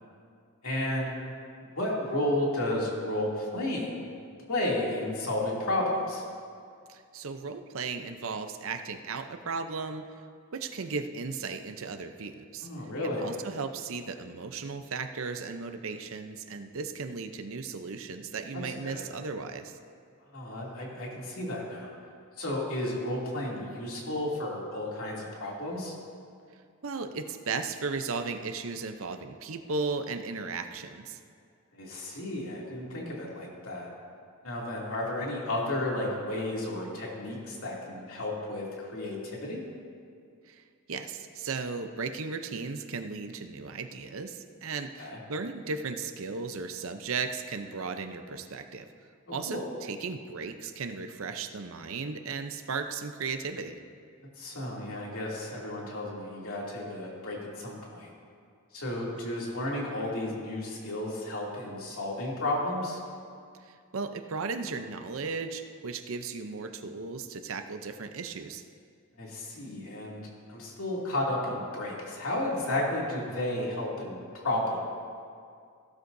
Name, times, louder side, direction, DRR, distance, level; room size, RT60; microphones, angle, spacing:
voice 1, 0.6-1.2 1.6-4.0 4.5-6.2 12.6-13.3 18.5-19.1 20.3-21.9 22.4-25.9 31.7-33.9 34.4-39.6 45.0-45.2 49.3-49.7 54.4-58.1 58.7-63.0 69.2-70.2 70.5-74.8, left 1 dB, 75° left, -4 dB, 2.6 m, -32 dB
voice 2, 6.9-10.0 10.5-12.7 13.2-19.8 26.8-31.2 40.5-48.9 49.3-53.8 63.6-68.6, right 4 dB, 70° right, 7 dB, 0.7 m, -36 dB
16.0 x 12.5 x 2.7 m, 2.2 s
head